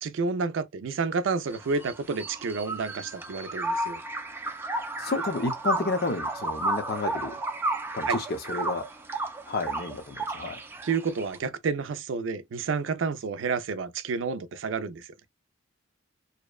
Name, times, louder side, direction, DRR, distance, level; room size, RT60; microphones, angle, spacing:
voice 1, 0.0-4.0 8.1-8.2 10.8-15.1, right 4 dB, 80° right, 0.4 m, -30 dB
sound 1, 1.5-11.4, right 2 dB, 10° right, 0.4 m, -33 dB
voice 2, 5.0-7.4 7.9-8.8 9.5-10.5, left 3 dB, 55° left, 0.6 m, -31 dB
2.7 x 2.1 x 2.2 m
head